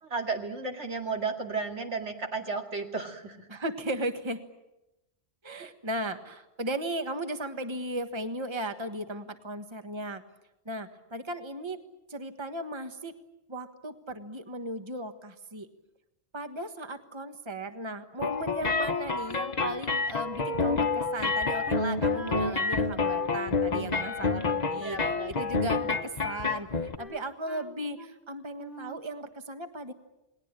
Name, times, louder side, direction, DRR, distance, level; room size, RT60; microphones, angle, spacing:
voice 1, 0.0-3.5 5.5-5.7 24.7-25.4, right 4 dB, 85° right, 3 dB, 2.7 m, -34 dB
voice 2, 3.5-4.4 5.4-10.2 10.6-11.8 12.1-13.1 13.5-15.7 16.3-25.0 25.3-29.9, right 1 dB, 25° right, 8 dB, 1.5 m, -36 dB
sound 1, 18.2-27.0, left 4 dB, 40° left, 1.1 m, -28 dB
Wind instrument woodwind instrument, 21.7-25.1 25.4-26.5 27.0-28.3 28.6-29.1, right 1 dB, ahead, 2.1 m, -46 dB
29.0 x 20.0 x 9.0 m, 0.96 s
omnidirectional pair, 1.1 m